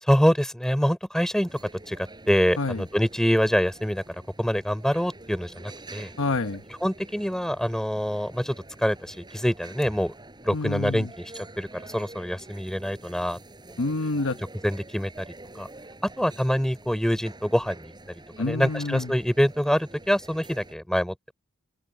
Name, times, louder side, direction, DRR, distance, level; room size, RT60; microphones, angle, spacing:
voice 1, 0.0-1.6 1.9-2.0 2.3-4.0 4.4-6.1 6.8-10.1 10.4-13.4 14.6-15.3 15.5-15.7 16.0-21.3, equal, ahead, 4.3 m, -25 dB
sound 1, 1.5-20.7, right 2 dB, 20° right, 7.9 m, -47 dB
voice 2, 6.2-6.6 10.5-11.1 13.8-14.4 18.4-19.1, left 3 dB, 60° left, 1.1 m, -27 dB
head